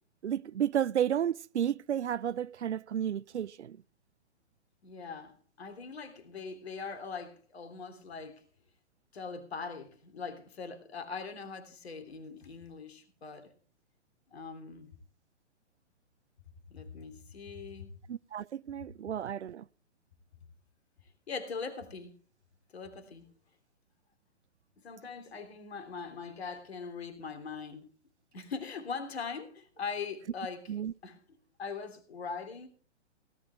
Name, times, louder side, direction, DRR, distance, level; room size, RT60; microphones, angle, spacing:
voice 1, 0.2-3.8 18.1-19.6 30.7-30.9, right 9 dB, 75° right, 0.5 m, -32 dB
voice 2, 4.8-8.4 9.1-13.5 14.3-15.0 16.7-18.0 21.3-22.1 22.7-23.3 24.8-27.9 28.3-30.7 31.0-31.2 31.6-32.7, left 5 dB, 60° left, 3.2 m, -41 dB
18.5 x 11.0 x 3.5 m
figure-of-eight pair, 125°, 35 cm